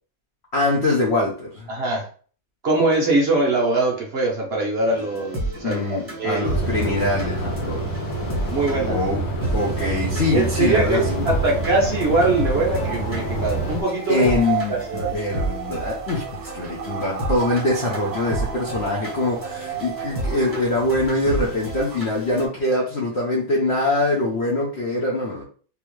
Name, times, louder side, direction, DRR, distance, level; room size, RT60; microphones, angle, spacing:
voice 1, 0.5-1.7 5.6-7.9 8.9-9.2 9.5-11.3 14.1-25.4, left 2 dB, 70° left, 0.6 m, -23 dB
voice 2, 1.7-2.1 2.6-5.8 6.1-6.5 7.4-7.5 8.5-9.0 10.3-14.3 14.7-15.2, right 2 dB, 70° right, 0.6 m, -22 dB
sound 1, 4.8-22.5, right 2 dB, 10° right, 0.7 m, -32 dB
sound 2, 6.4-13.8, right 2 dB, 85° left, 1.7 m, -27 dB
sound 3, 12.4-22.1, right 9 dB, 90° right, 1.4 m, -34 dB
3.4 x 2.8 x 3.1 m
omnidirectional pair, 2.2 m